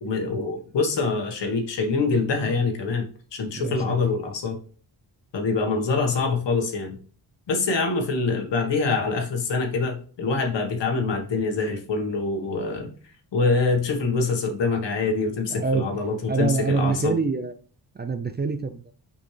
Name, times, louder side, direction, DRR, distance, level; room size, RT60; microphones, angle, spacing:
voice 1, 0.0-3.0 3.3-4.6 5.3-7.0 7.5-12.9 13.3-17.1, left 4 dB, 75° left, 4 dB, 1.6 m, -25 dB
voice 2, 3.5-4.0 15.5-15.9 16.3-17.5 17.9-18.9, right 4 dB, 25° right, 9 dB, 0.5 m, -26 dB
6.0 x 5.5 x 3.3 m, 0.41 s
wide cardioid pair, 125°, 43 cm